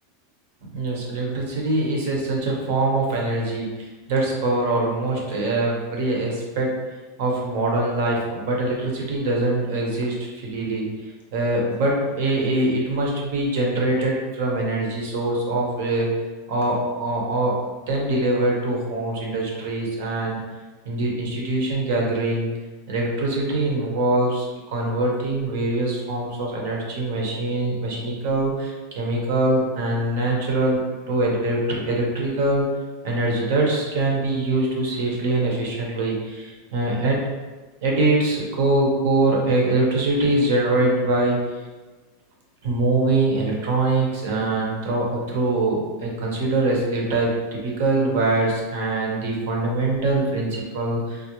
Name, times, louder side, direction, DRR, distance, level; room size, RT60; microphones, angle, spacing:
voice 1, 0.7-3.7 4.1-6.7 7.2-10.9 11.3-16.1 16.5-20.4 20.8-22.5 22.9-30.8 31.1-32.6 33.0-37.2 37.8-41.4 42.6-51.3, right 2 dB, 65° right, -1 dB, 0.8 m, -23 dB
3.7 x 2.1 x 2.9 m, 1.2 s
supercardioid pair, 160°, 0 cm